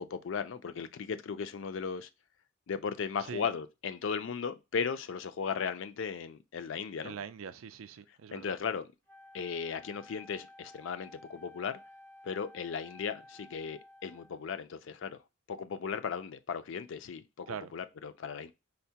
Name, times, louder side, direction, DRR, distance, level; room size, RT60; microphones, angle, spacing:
voice 1, 0.0-2.1 2.7-7.2 8.3-8.8 9.3-11.8 12.2-15.2 15.5-18.5, left 6 dB, 65° left, 0.4 m, -36 dB
voice 2, 7.0-8.5 17.5-17.7, right 7 dB, 85° right, 0.4 m, -42 dB
Wind instrument woodwind instrument, 9.1-14.5, left 1 dB, 10° left, 0.6 m, -54 dB
4.4 x 2.1 x 2.7 m
head